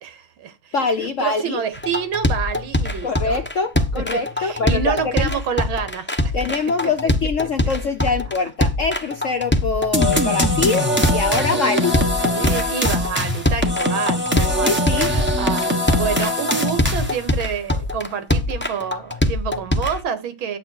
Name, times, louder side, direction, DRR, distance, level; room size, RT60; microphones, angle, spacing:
voice 1, 0.0-0.7 1.2-3.4 4.4-6.3 11.5-11.6 12.2-20.6, right 7 dB, 75° right, 1.9 m, -28 dB
voice 2, 0.7-1.6 3.0-5.3 6.3-12.0 14.6-15.1, left 4 dB, 60° left, 0.8 m, -23 dB
sound 1, 1.7-20.0, left 1 dB, 10° left, 0.5 m, -22 dB
sound 2, 9.9-17.3, equal, 5° right, 1.3 m, -22 dB
10.5 x 7.7 x 4.5 m
omnidirectional pair, 2.2 m